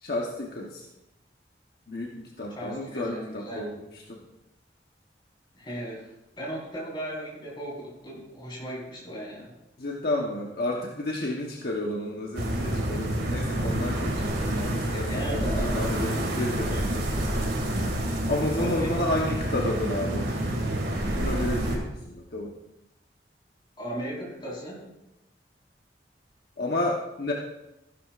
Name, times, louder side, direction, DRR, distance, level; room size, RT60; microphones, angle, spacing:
voice 1, 0.0-0.8 1.9-4.2 9.8-17.0 18.3-20.3 21.2-22.5 26.6-27.3, left 1 dB, 60° left, -1 dB, 1.1 m, -31 dB
voice 2, 2.6-3.6 5.5-6.0 6.4-9.5 14.9-15.8 16.7-16.9 18.5-19.0 23.8-24.9, equal, 25° left, -4 dB, 4.5 m, -36 dB
sound 1, 12.3-21.8, right 1 dB, 75° right, 2.5 m, -28 dB
14.0 x 11.5 x 2.5 m, 0.93 s
head